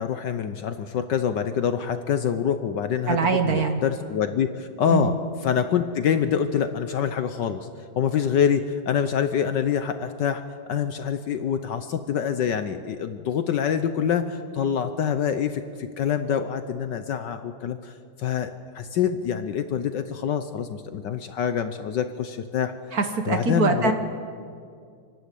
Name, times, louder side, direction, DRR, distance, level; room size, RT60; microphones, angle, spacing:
voice 1, 0.0-3.2 3.4-5.2 5.4-7.7 8.0-10.4 10.7-22.7 23.3-23.9, left 8 dB, 65° left, 9 dB, 1.2 m, -26 dB
voice 2, 3.1-3.8 4.9-5.1 22.9-23.9, right 4 dB, 50° right, 6 dB, 1.4 m, -23 dB
27.0 x 12.0 x 8.3 m, 2.3 s
omnidirectional pair, 2.4 m